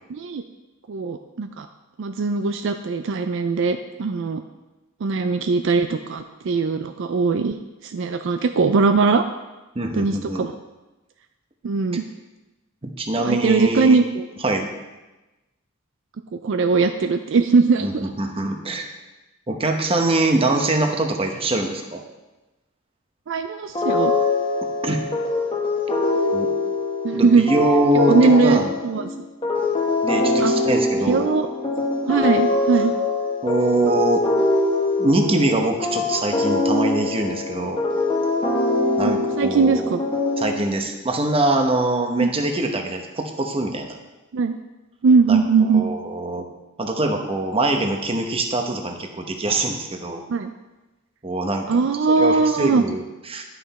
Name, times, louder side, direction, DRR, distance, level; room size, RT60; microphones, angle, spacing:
voice 1, 0.1-0.4 0.9-1.7 2.0-4.4 5.0-7.6 7.8-9.2 9.9-10.6 11.6-12.0 13.2-14.3 16.4-18.1 23.3-24.1 27.0-27.5 28.1-29.3 30.4-30.5 31.0-31.5 32.1-32.9 39.0-40.0 42.2-42.3 44.3-44.6 45.0-45.9 50.3-50.5 51.7-52.8, right 4 dB, 60° right, 7 dB, 0.4 m, -20 dB
voice 2, 9.7-10.4 12.8-14.0 14.4-14.7 17.8-18.9 19.5-22.0 24.8-25.0 26.3-26.5 27.1-28.7 30.0-31.3 33.4-34.3 35.0-37.8 39.0-39.9 40.4-44.0 45.3-45.4 45.7-46.5 46.8-50.2 51.2-51.8 52.2-53.4, right 2 dB, 25° right, 4 dB, 0.9 m, -23 dB
sound 1, 23.7-40.9, left 2 dB, 25° left, 0.9 m, -23 dB
10.5 x 5.8 x 4.2 m, 1.1 s
head